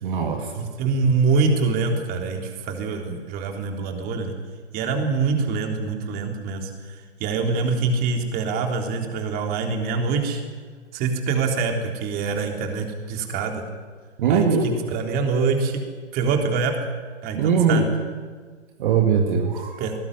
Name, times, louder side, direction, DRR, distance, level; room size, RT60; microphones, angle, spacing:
voice 1, 0.0-0.7 14.2-14.8 17.3-17.9 18.8-19.9, right 6 dB, 45° right, 3 dB, 2.6 m, -21 dB
voice 2, 0.5-4.3 4.7-10.4 10.9-13.6 14.3-15.8 16.1-16.8 17.2-17.8 19.8-20.0, right 4 dB, 25° right, 3 dB, 3.7 m, -25 dB
20.0 x 19.0 x 10.0 m, 1.5 s
hypercardioid pair, 130°, 36 cm